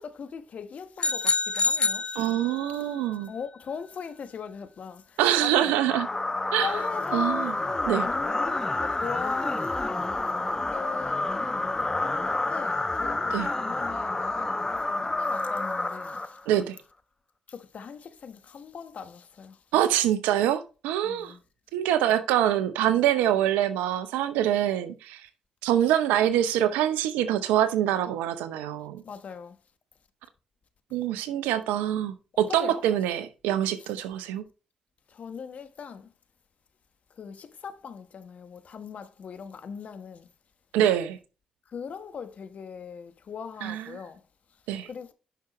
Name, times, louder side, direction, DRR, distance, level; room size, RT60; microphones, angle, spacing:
voice 1, 0.0-2.3 2.8-2.9 3.3-5.7 6.6-10.1 10.7-16.4 17.5-19.6 21.0-21.4 29.0-29.6 32.5-33.0 33.8-33.9 35.1-36.1 37.1-40.3 41.7-44.3 44.8-45.1, left 6 dB, 55° left, 1.1 m, -40 dB
sound 1, 1.0-2.8, left 4 dB, 40° left, 0.6 m, -27 dB
voice 2, 2.2-3.3 5.2-6.1 6.5-6.7 7.1-7.5 7.9-8.1 13.3-13.5 16.5-16.8 19.7-21.3 21.7-25.2 25.6-29.0 30.9-34.4 40.7-41.2 43.6-43.8 44.7-44.9, right 11 dB, 80° right, 0.7 m, -25 dB
sound 2, 5.9-16.6, left 2 dB, 20° left, 0.9 m, -29 dB
9.3 x 5.9 x 3.1 m
hypercardioid pair, 40°, 3 cm